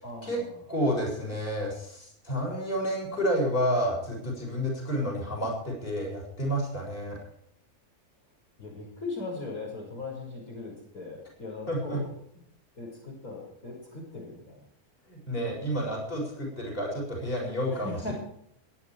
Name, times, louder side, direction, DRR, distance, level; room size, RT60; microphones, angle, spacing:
voice 1, 0.0-0.6 8.6-12.1 12.8-14.6 17.7-18.1, left 3 dB, 65° left, -2 dB, 6.5 m, -39 dB
voice 2, 0.7-7.2 11.7-12.0 15.1-18.1, equal, 35° left, -2 dB, 7.1 m, -30 dB
22.0 x 10.5 x 4.9 m, 0.69 s
omnidirectional pair, 1.6 m